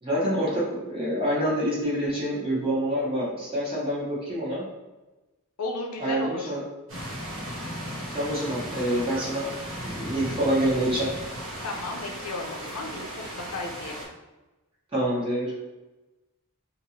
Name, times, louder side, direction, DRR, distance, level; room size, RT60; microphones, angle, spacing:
voice 1, 0.0-4.6 6.0-6.6 8.1-9.5 9.8-11.1 14.9-15.5, right 1 dB, 25° right, -7 dB, 0.9 m, -26 dB
voice 2, 5.6-6.5 11.6-14.1, left 2 dB, 75° left, 1 dB, 0.6 m, -34 dB
sound 1, 6.9-14.0, equal, 70° right, 0.9 m, -36 dB
2.9 x 2.6 x 2.7 m, 1.1 s
head